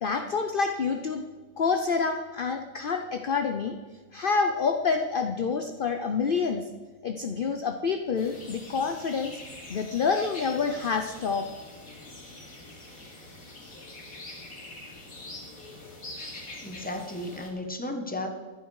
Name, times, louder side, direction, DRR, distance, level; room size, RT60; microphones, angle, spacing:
voice 1, 0.0-1.2 1.6-3.8 4.1-6.6 7.0-9.4 9.7-11.4, left 5 dB, 45° left, 5 dB, 0.8 m, -27 dB
sound 1, 8.1-17.5, left 2 dB, 90° left, 3.3 m, -44 dB
voice 2, 16.6-18.3, left 1 dB, 5° left, 4 dB, 1.3 m, -34 dB
14.5 x 11.5 x 4.8 m, 1.4 s
omnidirectional pair, 1.4 m